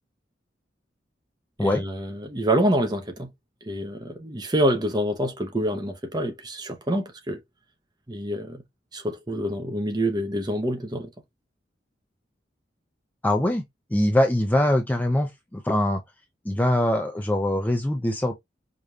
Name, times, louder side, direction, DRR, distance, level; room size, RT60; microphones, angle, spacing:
voice 1, 1.6-3.3 3.6-7.4 8.1-8.6 8.9-11.1, right 1 dB, 20° right, 0.8 m, -26 dB
voice 2, 13.2-13.6 13.9-16.0 16.4-18.3, left 1 dB, 10° left, 0.5 m, -23 dB
5.0 x 2.8 x 2.4 m
head